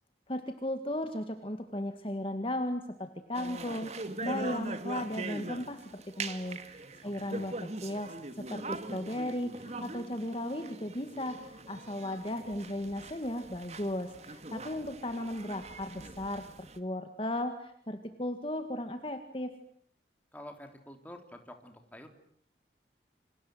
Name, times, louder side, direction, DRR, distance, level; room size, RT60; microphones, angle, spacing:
voice 1, 0.3-19.5, left 1 dB, 30° left, 7 dB, 1.9 m, -36 dB
sound 1, 3.3-16.8, right 2 dB, 35° right, 2.1 m, -42 dB
voice 2, 7.0-7.6 20.3-22.1, left 1 dB, 10° left, 5 dB, 3.5 m, -49 dB
28.5 x 26.5 x 7.9 m, 0.64 s
head